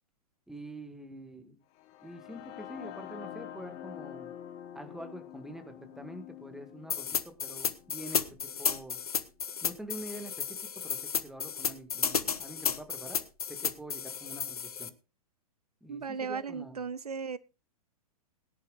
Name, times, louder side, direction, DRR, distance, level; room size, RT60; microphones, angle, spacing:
voice 1, 0.5-1.6 2.0-4.3 4.7-9.0 9.6-13.2 13.5-14.9 15.8-16.8, right 1 dB, ahead, 1.8 m, -46 dB
sound 1, 1.8-9.7, left 11 dB, 35° left, 1.4 m, -47 dB
sound 2, 6.9-14.9, left 7 dB, 70° left, 1.1 m, -33 dB
voice 2, 15.9-17.4, right 5 dB, 80° right, 0.6 m, -36 dB
20.5 x 11.0 x 2.5 m
figure-of-eight pair, 110°, 20 cm